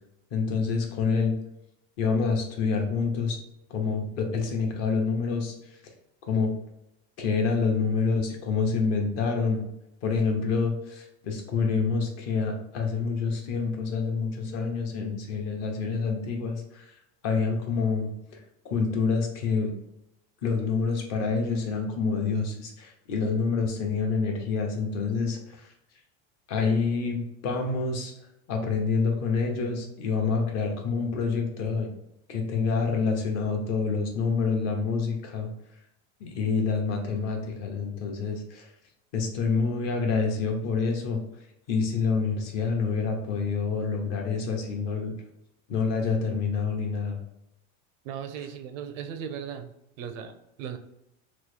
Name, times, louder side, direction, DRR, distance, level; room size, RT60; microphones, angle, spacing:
voice 1, 0.3-1.3 2.0-3.4 3.7-5.5 6.3-6.5 7.2-9.6 10.0-16.8 17.2-18.4 18.6-19.7 20.4-25.6 26.5-28.1 28.5-31.9 32.3-35.5 36.2-38.7 39.1-41.2 41.7-45.1 45.7-47.2, left 5 dB, 45° left, 2 dB, 0.7 m, -27 dB
voice 2, 48.0-49.7 50.0-50.8, right 8 dB, 85° right, 8 dB, 0.5 m, -37 dB
3.0 x 2.0 x 3.2 m, 0.84 s
supercardioid pair, 135°, 37 cm